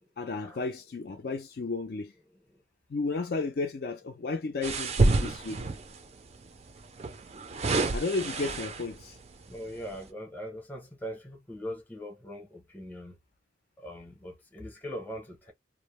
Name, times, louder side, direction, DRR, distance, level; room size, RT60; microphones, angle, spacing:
voice 1, 0.2-2.1 2.9-5.6 7.9-9.1, left 3 dB, 55° left, 0.4 m, -33 dB
sound 1, 4.6-6.0 7.0-9.0 9.6-9.8, right 3 dB, 35° right, 0.4 m, -28 dB
voice 2, 9.5-12.5 12.7-13.1 13.8-15.5, equal, 10° left, 0.7 m, -41 dB
2.5 x 2.0 x 2.9 m
head